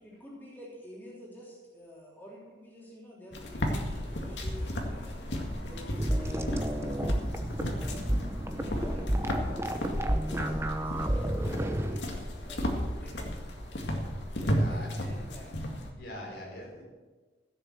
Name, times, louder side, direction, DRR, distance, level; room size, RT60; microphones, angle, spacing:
voice 1, 0.0-5.3 5.6-7.3 7.7-8.2 8.5-12.0 12.4-13.5 14.7-15.5, equal, 10° left, -5 dB, 3.3 m, -49 dB
sound 1, 3.3-15.9, equal, 85° left, 2.0 m, -34 dB
sound 2, 6.0-12.0, right 1 dB, 15° right, 0.8 m, -31 dB
voice 2, 14.4-15.0 15.9-16.8, left 1 dB, 70° left, -1 dB, 4.1 m, -43 dB
15.5 x 6.9 x 7.4 m, 1.3 s
head